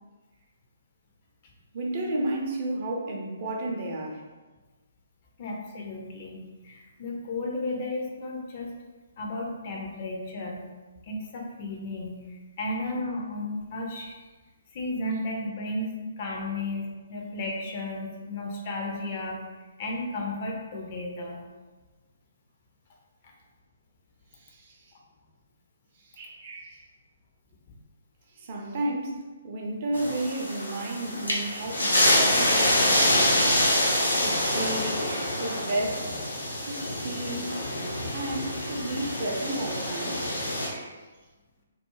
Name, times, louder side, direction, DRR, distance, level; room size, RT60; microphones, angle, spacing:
voice 1, 1.7-4.2 24.3-24.9 26.0-26.9 28.3-33.8 34.2-36.1 36.6-37.6 38.1-41.1, right 1 dB, 40° right, -1 dB, 0.4 m, -33 dB
voice 2, 5.4-8.7 9.2-10.7 11.0-14.2 14.7-15.9 16.2-19.4 19.8-21.5 23.2-23.3 36.8-36.9, left 2 dB, 35° left, -1 dB, 0.4 m, -34 dB
sound 1, 29.9-40.7, left 1 dB, 75° left, 0.7 m, -26 dB
2.3 x 2.0 x 3.0 m, 1.2 s
figure-of-eight pair, 130°, 0 cm